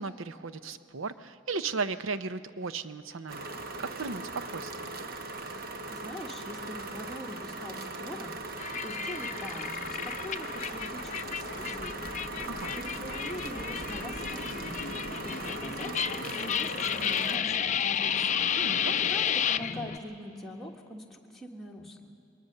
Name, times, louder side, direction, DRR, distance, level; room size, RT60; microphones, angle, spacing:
voice 1, 0.0-3.5 3.8-4.9 12.4-12.8 18.5-18.9, right 4 dB, 85° right, 13 dB, 0.7 m, -36 dB
sound 1, 3.3-17.4, right 2 dB, 50° right, 1.2 m, -39 dB
voice 2, 5.9-8.5 8.8-12.3 12.7-18.4 19.1-22.1, left 1 dB, ahead, -1 dB, 1.4 m, -43 dB
sound 2, 8.2-16.2, left 1 dB, 25° right, 2.1 m, -49 dB
sound 3, 8.6-20.0, left 8 dB, 40° left, 0.5 m, -32 dB
21.5 x 20.0 x 6.7 m, 2.8 s
head